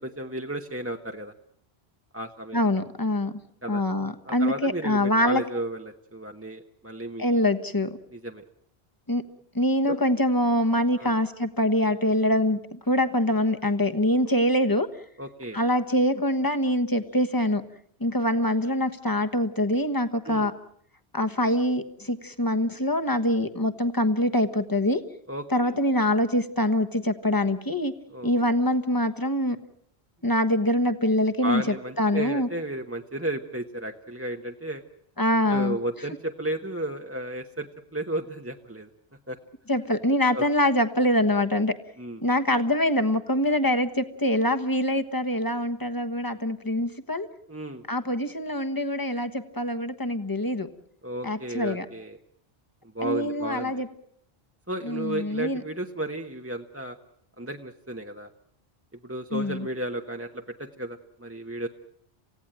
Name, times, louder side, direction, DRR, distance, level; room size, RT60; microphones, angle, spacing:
voice 1, 0.0-1.3 2.1-2.6 3.6-3.8 4.2-7.4 8.1-8.4 9.9-10.0 10.9-11.2 15.2-15.6 20.2-20.5 25.3-25.7 28.1-28.4 31.4-34.8 35.5-38.9 39.3-39.4 40.3-40.4 42.0-42.2 47.5-47.8 51.0-52.2 52.9-53.8 54.7-57.0 57.4-58.3 59.0-61.7, right 1 dB, 15° right, 3 dB, 1.0 m, -33 dB
voice 2, 2.5-3.4 3.7-5.4 7.2-8.0 9.1-9.2 9.5-14.9 15.5-17.6 18.0-20.5 21.1-25.0 25.5-27.9 28.2-29.6 30.2-32.5 35.2-35.8 39.7-41.7 42.2-47.3 47.9-50.7 51.2-51.8 53.0-53.9 54.8-55.6 59.3-59.7, left 1 dB, 20° left, 8 dB, 1.3 m, -24 dB
28.0 x 16.5 x 8.9 m, 0.70 s
omnidirectional pair, 1.0 m